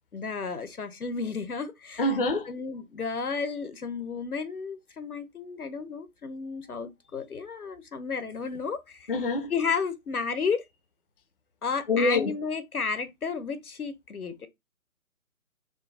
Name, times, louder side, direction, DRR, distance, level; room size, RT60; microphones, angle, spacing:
voice 1, 0.1-2.0 2.5-9.1 9.5-10.6 11.6-14.5, left 5 dB, 85° left, 0.8 m, -32 dB
voice 2, 2.0-2.5 9.1-9.5 11.9-12.3, left 2 dB, 40° left, 0.4 m, -25 dB
3.7 x 2.0 x 3.9 m
figure-of-eight pair, 145°, 43 cm